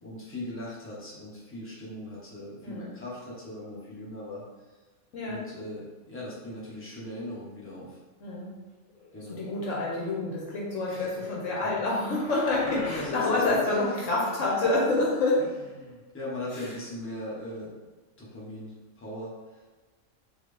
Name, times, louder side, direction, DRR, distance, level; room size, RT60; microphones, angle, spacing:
voice 1, 0.0-4.7 5.2-8.0 9.1-9.4 10.9-11.2 11.6-11.8 12.6-14.0 14.3-14.7 15.4-17.7 18.2-19.6, left 1 dB, 10° left, -8 dB, 1.1 m, -39 dB
voice 2, 8.2-8.5 9.4-15.4 16.5-16.7, left 2 dB, 65° left, -4 dB, 1.2 m, -27 dB
sound 1, 11.1-13.2, left 1 dB, 85° left, 1.2 m, -43 dB
4.1 x 2.8 x 3.3 m, 1.3 s
omnidirectional pair, 1.4 m